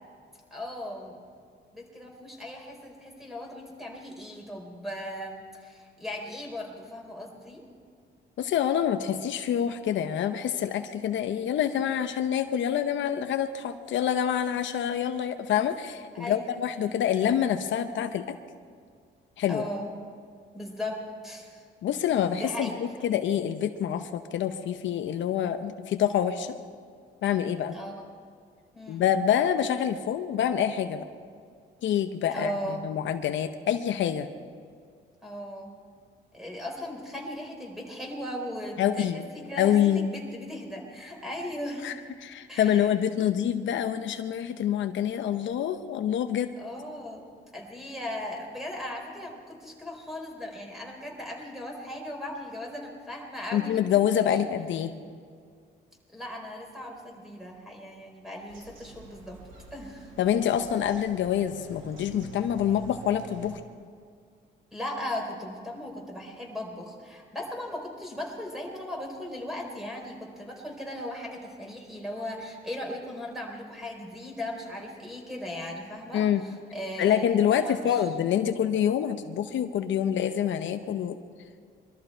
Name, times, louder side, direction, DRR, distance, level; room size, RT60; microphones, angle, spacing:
voice 1, 0.5-1.2 1.7-7.7 16.2-16.5 16.8-17.0 19.5-19.9 20.5-21.6 22.3-23.1 27.7-28.0 28.7-29.0 32.3-32.8 35.2-35.7 36.3-42.0 42.5-42.9 43.2-43.3 46.6-47.3 47.5-53.9 54.3-54.5 56.1-59.4 59.7-60.1 64.7-78.0, left 1 dB, ahead, 0 dB, 4.3 m, -38 dB
voice 2, 8.4-18.4 19.4-19.6 21.8-26.6 27.2-27.7 28.9-31.1 31.8-34.3 38.8-39.2 39.6-40.1 41.8-41.9 42.2-46.5 53.5-54.9 60.2-63.6 76.1-76.4 77.0-81.2, left 9 dB, 70° left, 8 dB, 0.8 m, -26 dB
Bird vocalization bird call bird song, 58.5-63.5, right 5 dB, 80° right, 2.7 m, -48 dB
22.5 x 13.5 x 4.5 m, 2.1 s
cardioid pair, 90°, 20 cm